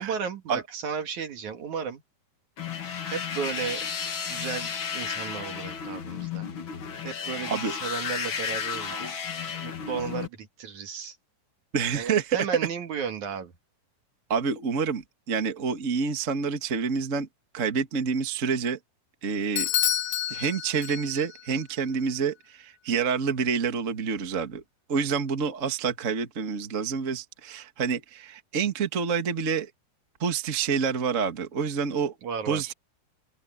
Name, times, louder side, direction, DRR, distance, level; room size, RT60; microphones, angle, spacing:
voice 1, 0.0-2.0 3.1-3.9 4.3-6.5 7.0-9.2 9.6-11.2 11.9-13.5 32.2-32.7, right 6 dB, 55° right, 3.1 m, -34 dB
sound 1, 2.6-10.3, left 7 dB, 50° left, 1.7 m, -33 dB
voice 2, 7.5-7.8 8.9-9.1 11.7-12.5 14.3-17.3 17.5-18.8 19.2-19.7 20.3-24.6 24.9-29.7 30.2-32.1 32.5-32.7, right 6 dB, 35° right, 1.2 m, -28 dB
Bell / Doorbell, 19.6-21.4, left 11 dB, 65° left, 2.4 m, -28 dB
open air
omnidirectional pair, 4.2 m